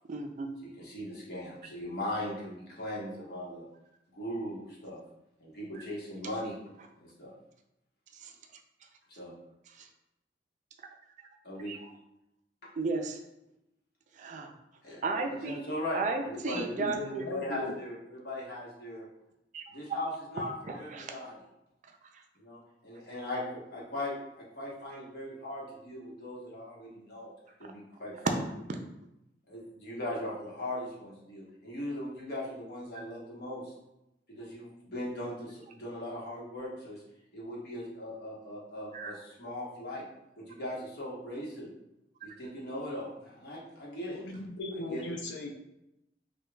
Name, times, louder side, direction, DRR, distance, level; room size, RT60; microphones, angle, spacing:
voice 1, 0.1-0.5 8.1-8.3 9.7-9.9 11.2-11.3 11.7-11.8 12.8-13.2 14.1-14.5 15.0-15.6 15.9-17.2 19.5-19.6 20.7-21.1 22.1-22.2 28.7-28.8 38.9-39.1, right 3 dB, 45° right, 4 dB, 0.3 m, -34 dB
voice 2, 0.6-3.6 4.1-5.0 5.4-6.6 7.0-7.3 9.1-9.3 11.4-11.7 14.8-15.0 15.4-16.0 16.2-16.7 17.2-19.1 19.7-21.4 22.4-23.4 23.7-27.3 27.6-28.4 29.5-33.7 34.3-37.0 37.3-40.0 40.4-41.7 42.2-44.2 44.7-45.1, left 1 dB, 60° left, -5 dB, 1.0 m, -39 dB
voice 3, 16.5-17.7 44.1-45.5, left 2 dB, 80° left, 2 dB, 0.4 m, -38 dB
4.8 x 2.3 x 2.2 m, 0.87 s
head